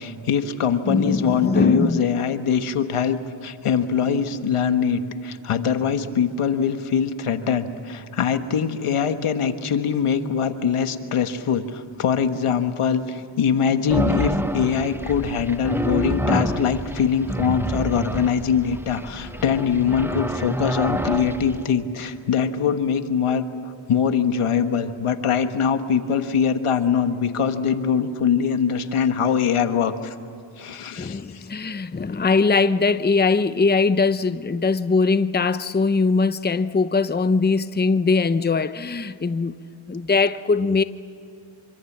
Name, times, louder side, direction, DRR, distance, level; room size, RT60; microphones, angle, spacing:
voice 1, 0.0-30.1 30.6-31.4, left 7 dB, 80° left, 1.5 m, -23 dB
voice 2, 0.9-2.1 19.3-19.4 31.0-39.6 39.9-40.8, left 4 dB, 20° left, 0.8 m, -21 dB
sound 1, 13.9-21.6, right 1 dB, 5° right, 1.1 m, -27 dB
26.0 x 25.0 x 7.4 m
cardioid pair, 65°, 50 cm